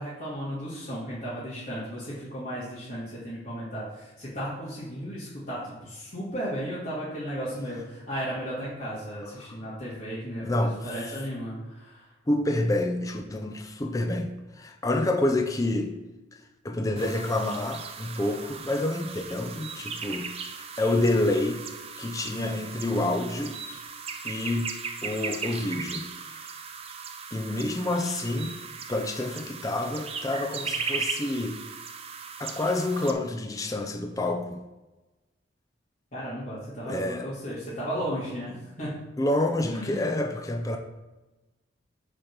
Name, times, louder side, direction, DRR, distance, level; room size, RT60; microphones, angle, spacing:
voice 1, 0.0-12.1 36.1-39.0 39.7-40.1, equal, 45° left, -11 dB, 2.1 m, -35 dB
voice 2, 10.4-11.2 12.3-16.0 16.6-21.6 22.0-23.6 24.2-26.5 27.3-28.6 28.9-31.6 32.4-34.6 36.8-37.6 39.2-40.8, left 1 dB, 20° left, 5 dB, 0.4 m, -28 dB
sound 1, 17.0-33.1, right 5 dB, 30° right, 0.5 m, -37 dB
6.4 x 4.2 x 5.9 m, 1.1 s
head